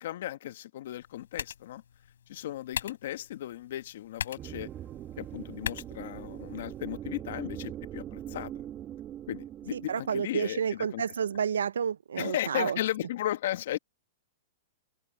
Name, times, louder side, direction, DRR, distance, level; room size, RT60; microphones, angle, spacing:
voice 1, 0.0-1.8 2.3-4.7 5.2-8.5 9.3-11.0 12.2-13.8, left 13 dB, 65° left, 1.5 m, -35 dB
sound 1, 0.8-6.8, left 8 dB, 80° left, 4.2 m, -42 dB
sound 2, 4.4-11.0, right 11 dB, 25° right, 1.3 m, -42 dB
voice 2, 9.7-12.8, right 7 dB, 85° right, 0.4 m, -30 dB
hypercardioid pair, 135°, 0 cm